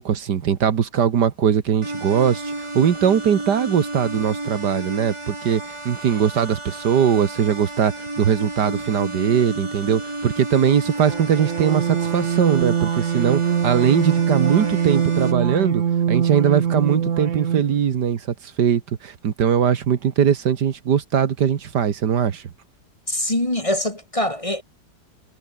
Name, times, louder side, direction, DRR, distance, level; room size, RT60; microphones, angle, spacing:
voice 1, 0.0-15.8 16.1-22.4, right 8 dB, 70° right, 1.9 m, -20 dB
sound 1, 1.8-15.3, right 2 dB, 15° right, 2.5 m, -32 dB
sound 2, 11.0-17.8, right 8 dB, 50° right, 1.3 m, -23 dB
voice 2, 23.1-24.6, left 1 dB, 20° left, 2.7 m, -23 dB
omnidirectional pair, 1.9 m